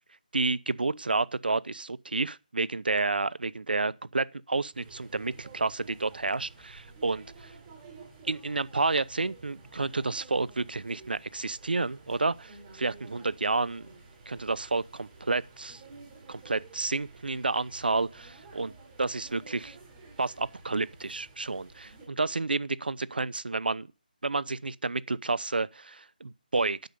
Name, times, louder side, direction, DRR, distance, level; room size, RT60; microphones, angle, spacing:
voice 1, 0.3-7.5 8.2-13.9 14.3-15.8 16.3-18.7 19.0-19.8 20.2-23.9 24.2-26.9, right 3 dB, 80° right, 0.8 m, -30 dB
sound 1, 4.7-22.1, right 3 dB, 15° right, 3.9 m, -52 dB
10.5 x 6.4 x 6.8 m
figure-of-eight pair, 170°, 5 cm